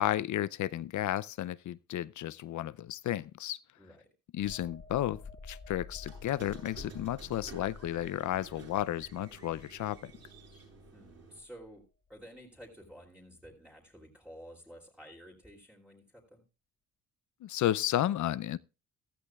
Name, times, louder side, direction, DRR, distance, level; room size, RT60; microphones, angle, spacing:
voice 1, 0.0-3.6 4.3-5.2 5.5-10.1 17.4-18.6, left 13 dB, 60° left, 0.5 m, -33 dB
voice 2, 3.8-4.1 10.7-11.8 12.1-16.4, equal, 5° right, 2.9 m, -52 dB
sound 1, 4.4-11.8 12.2-12.4, left 4 dB, 25° left, 2.9 m, -50 dB
Squeak, 6.0-11.4, right 4 dB, 45° right, 8.0 m, -52 dB
15.0 x 13.0 x 2.3 m
cardioid pair, 100°, 33 cm